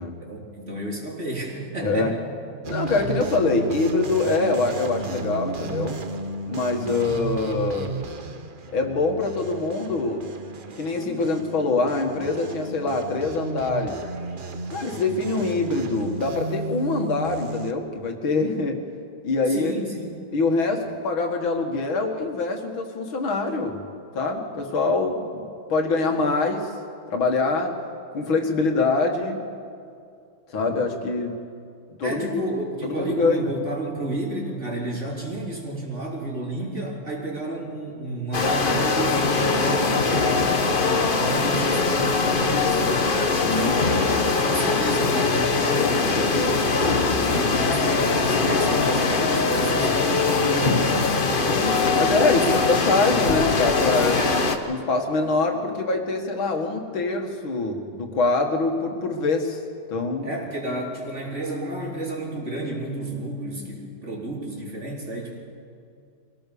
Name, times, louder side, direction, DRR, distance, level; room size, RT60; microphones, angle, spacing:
voice 1, 0.3-2.2 19.5-20.2 32.0-43.1 44.4-46.9 47.3-51.5 52.3-52.9 54.1-54.4 60.2-65.4, right 1 dB, 35° right, -2 dB, 3.8 m, -31 dB
voice 2, 1.8-2.1 2.7-6.0 6.5-7.9 8.7-10.3 10.8-14.0 14.7-18.9 19.2-19.7 20.3-23.8 24.1-25.4 25.7-26.7 27.1-27.8 28.1-29.4 30.5-31.4 32.0-32.4 32.8-33.5 43.4-43.9 47.5-47.6 51.5-52.5 52.8-54.2 54.7-59.6 59.9-60.3, left 3 dB, 75° left, 3 dB, 2.6 m, -24 dB
sound 1, 2.6-17.7, right 4 dB, 50° right, 0.6 m, -34 dB
sound 2, 38.3-54.6, left 4 dB, 35° left, 1.0 m, -22 dB
24.5 x 17.5 x 6.9 m, 2.4 s
omnidirectional pair, 2.2 m